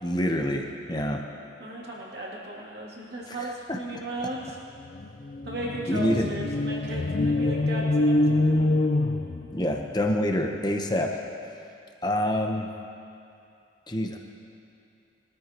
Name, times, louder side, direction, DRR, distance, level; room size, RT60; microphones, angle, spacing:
voice 1, 0.0-1.2 3.3-3.8 5.9-6.3 9.5-11.1 12.0-12.7 13.9-14.2, left 1 dB, 20° left, 2 dB, 1.0 m, -26 dB
voice 2, 1.6-4.6 5.4-8.8, right 1 dB, 55° right, -5 dB, 2.8 m, -36 dB
sound 1, 4.4-4.5 4.8-9.9, left 2 dB, 40° left, 0.4 m, -25 dB
22.5 x 13.5 x 3.0 m, 2.6 s
head